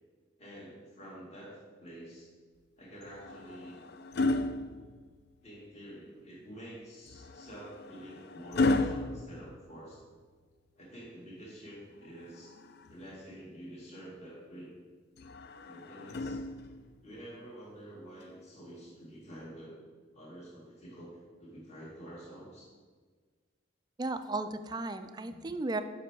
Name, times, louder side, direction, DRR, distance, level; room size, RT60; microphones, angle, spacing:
voice 1, 0.4-2.3 2.8-3.8 5.4-10.0 10.8-12.5 12.9-14.7 15.6-16.4 17.0-19.7 20.1-22.7, right 1 dB, 35° left, -5 dB, 1.8 m, -48 dB
sound 1, 3.0-5.5 7.1-10.3 12.0-13.2 15.2-17.0 18.2-18.4, left 2 dB, 55° left, 0.4 m, -34 dB
voice 2, 24.0-25.8, right 2 dB, 20° right, 10 dB, 0.3 m, -35 dB
7.6 x 5.5 x 4.5 m, 1.5 s
head